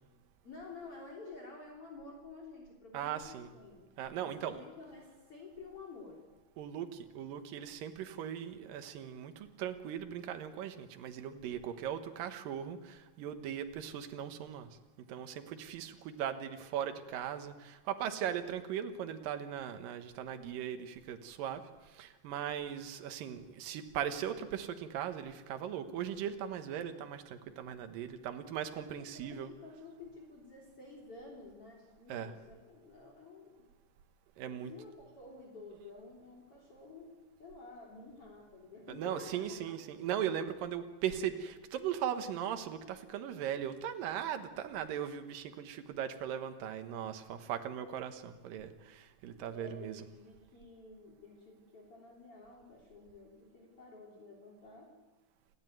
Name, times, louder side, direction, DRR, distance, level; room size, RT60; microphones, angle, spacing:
voice 1, 0.4-3.9 4.2-6.2 29.1-33.6 34.4-39.4 49.5-54.9, left 3 dB, 40° left, 0 dB, 4.1 m, -51 dB
voice 2, 2.9-3.5 4.0-4.6 6.6-14.8 15.1-29.5 32.1-32.3 34.4-34.7 38.9-50.0, right 9 dB, 75° right, 8 dB, 2.9 m, -39 dB
29.0 x 12.0 x 9.3 m, 1.2 s
omnidirectional pair, 4.0 m